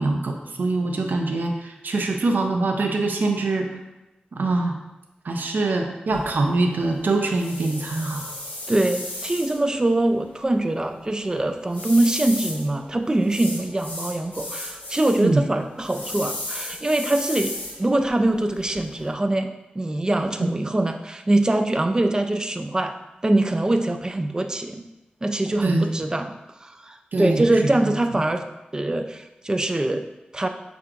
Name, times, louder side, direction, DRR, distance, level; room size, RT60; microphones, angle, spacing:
voice 1, 0.0-3.7 4.4-4.7 5.2-8.2 15.2-15.4 25.6-25.8 27.1-27.4, right 2 dB, 80° right, 3 dB, 0.5 m, -23 dB
sound 1, 6.1-19.1, left 1 dB, 70° left, 1.1 m, -36 dB
voice 2, 8.7-17.5 17.8-22.9 23.2-24.9 25.2-26.3 26.6-28.4 28.7-30.0 30.3-30.5, right 1 dB, 25° right, 6 dB, 0.3 m, -23 dB
6.2 x 3.4 x 2.5 m, 0.98 s
wide cardioid pair, 110°, 3 cm